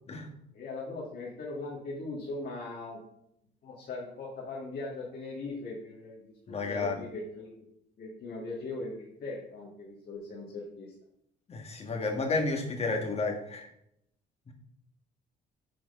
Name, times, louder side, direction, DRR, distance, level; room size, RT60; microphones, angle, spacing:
voice 1, 0.5-3.0 3.6-7.6 8.0-10.9, left 2 dB, 55° left, -5 dB, 1.8 m, -39 dB
voice 2, 6.5-7.0 11.5-13.7 14.5-14.6, left 3 dB, 30° left, 2 dB, 1.5 m, -31 dB
6.2 x 4.6 x 5.3 m, 0.76 s
cardioid pair, 115°, 19 cm